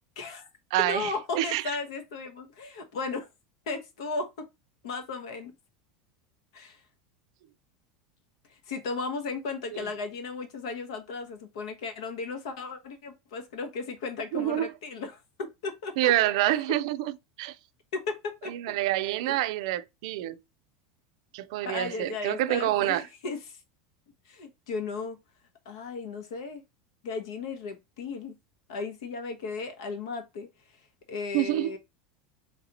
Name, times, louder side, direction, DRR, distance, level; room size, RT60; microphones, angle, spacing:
voice 1, 0.2-0.5 0.8-3.3 3.7-4.5 4.8-5.5 6.5-6.8 8.7-16.1 17.9-18.5 19.3-19.4 21.6-23.6 24.3-25.2 25.6-26.6 27.0-28.4 28.7-30.5 31.1-31.8, left 4 dB, 90° left, 1.0 m, -35 dB
voice 2, 0.7-1.6 9.7-9.8 14.3-14.7 16.0-17.5 18.5-20.4 21.3-23.1 31.3-31.8, right 14 dB, 65° right, 0.4 m, -27 dB
3.2 x 2.9 x 3.9 m
supercardioid pair, 155°, 3 cm